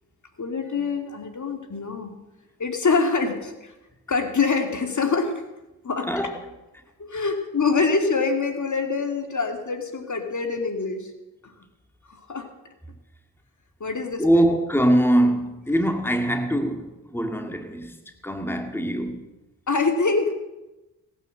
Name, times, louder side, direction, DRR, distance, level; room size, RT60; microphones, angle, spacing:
voice 1, 0.4-2.1 2.6-3.7 4.1-5.4 5.8-6.1 7.0-11.1 11.4-11.5 12.1-12.5 13.8-14.6 19.7-20.3, left 4 dB, 50° left, 2.5 m, -25 dB
voice 2, 14.2-19.3, right 1 dB, 5° left, 2.2 m, -23 dB
18.0 x 9.3 x 7.7 m
cardioid pair, 50°, 37 cm